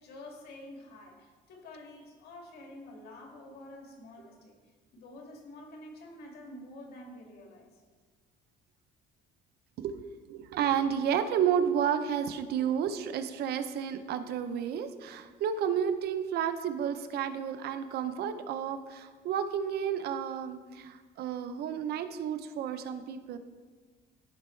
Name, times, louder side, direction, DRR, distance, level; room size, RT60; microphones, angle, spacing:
voice 1, 0.0-4.6 4.9-7.8, left 1 dB, 70° left, 0 dB, 2.1 m, -48 dB
voice 2, 10.3-23.4, right 8 dB, 70° right, 10 dB, 0.7 m, -31 dB
14.5 x 5.4 x 3.2 m, 1.5 s
cardioid pair, 110°, 17 cm